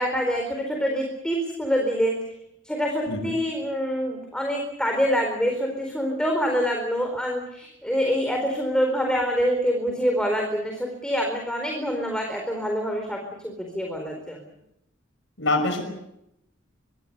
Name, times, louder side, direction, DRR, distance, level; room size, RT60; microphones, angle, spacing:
voice 1, 0.0-2.2 2.6-14.4, equal, 5° left, 2 dB, 4.3 m, -26 dB
voice 2, 15.4-15.9, left 2 dB, 70° left, 6 dB, 5.7 m, -25 dB
24.5 x 24.0 x 6.8 m, 0.80 s
head